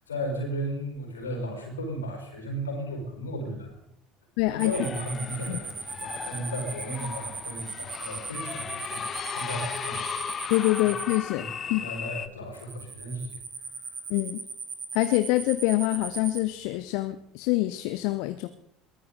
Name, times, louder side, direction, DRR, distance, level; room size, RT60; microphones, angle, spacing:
voice 1, 0.0-3.8 4.5-10.5 10.8-10.9 11.3-13.3 13.6-14.0, equal, 80° left, 1 dB, 5.0 m, -35 dB
voice 2, 4.4-4.7 5.5-5.6 10.5-11.4 11.7-11.8 14.1-14.4 14.9-18.5, left 18 dB, 60° left, 11 dB, 0.7 m, -25 dB
sound 1, 4.6-11.2 12.5-16.4, right 5 dB, 25° right, 2.3 m, -37 dB
sound 2, 4.7-12.3, left 7 dB, 35° left, 1.0 m, -37 dB
22.5 x 14.5 x 4.0 m, 0.73 s
figure-of-eight pair, 65°, 0 cm